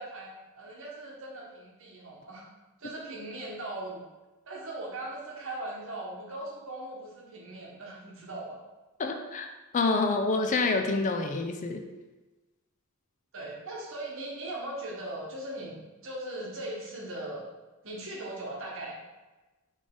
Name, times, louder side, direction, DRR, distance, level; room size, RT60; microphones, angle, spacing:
voice 1, 0.0-2.5 2.8-4.0 4.5-8.6 13.3-15.8 16.0-17.5 17.8-18.9, right 1 dB, 65° right, -3 dB, 1.1 m, -39 dB
voice 2, 9.0-11.8, left 3 dB, 35° left, 5 dB, 0.4 m, -27 dB
4.0 x 3.2 x 3.8 m, 1.2 s
head